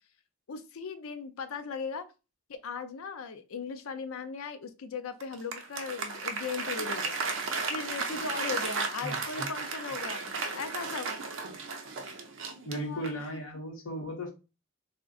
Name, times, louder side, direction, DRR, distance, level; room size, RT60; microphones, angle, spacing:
voice 1, 0.5-2.1 2.5-11.2 12.7-13.1, left 5 dB, 75° left, 0.4 m, -38 dB
Applause, 5.2-13.3, right 4 dB, 60° right, 0.5 m, -35 dB
voice 2, 9.0-9.5 10.2-10.3 12.6-14.3, equal, 60° left, 0.9 m, -36 dB
2.4 x 2.1 x 3.6 m
head